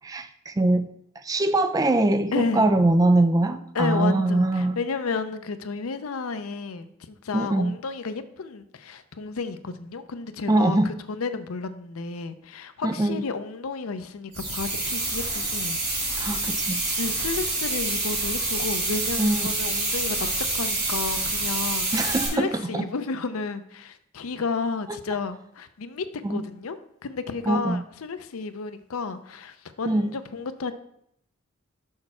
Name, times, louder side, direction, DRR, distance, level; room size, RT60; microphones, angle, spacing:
voice 1, 0.0-0.9 1.2-4.8 7.3-7.8 10.5-10.9 12.8-13.2 16.2-17.0 19.2-19.5 21.9-22.9 24.9-25.0 26.2-26.4 27.5-27.8 29.9-30.1, right 2 dB, 15° right, 0.3 m, -23 dB
voice 2, 2.3-2.7 3.7-15.8 17.0-30.7, left 4 dB, 85° left, 0.6 m, -32 dB
sound 1, 14.3-22.3, right 2 dB, 30° right, 2.8 m, -27 dB
6.5 x 4.2 x 6.0 m
head